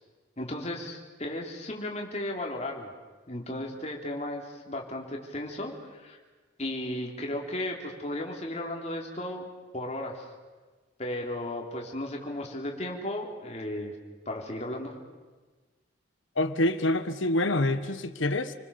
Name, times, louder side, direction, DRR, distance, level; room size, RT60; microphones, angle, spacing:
voice 1, 0.4-2.9 3.3-6.2 6.6-9.5 9.7-10.3 11.0-13.9 14.2-15.0, left 1 dB, 35° left, 0 dB, 3.5 m, -35 dB
voice 2, 16.4-18.5, left 1 dB, 80° left, 10 dB, 1.5 m, -26 dB
29.5 x 21.0 x 7.1 m, 1.3 s
head